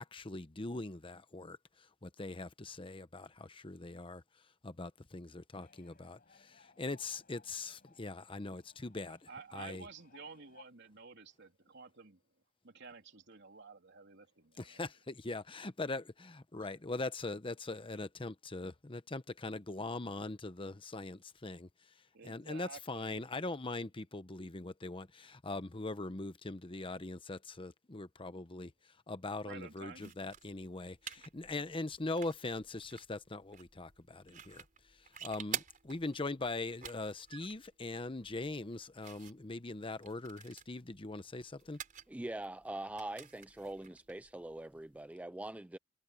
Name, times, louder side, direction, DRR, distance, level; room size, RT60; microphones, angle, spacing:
voice 1, 0.0-4.2 4.6-9.9 14.6-41.8, left 2 dB, 25° left, 0.9 m, -41 dB
sound 1, 5.6-10.6, left 4 dB, 45° left, 5.5 m, -64 dB
voice 2, 9.1-12.2 12.6-14.8 16.6-16.7 22.1-23.2 29.4-30.1, right 4 dB, 60° right, 3.4 m, -52 dB
sound 2, 29.9-45.1, right 8 dB, 45° right, 4.1 m, -50 dB
voice 3, 42.1-45.8, right 1 dB, 5° right, 0.4 m, -43 dB
head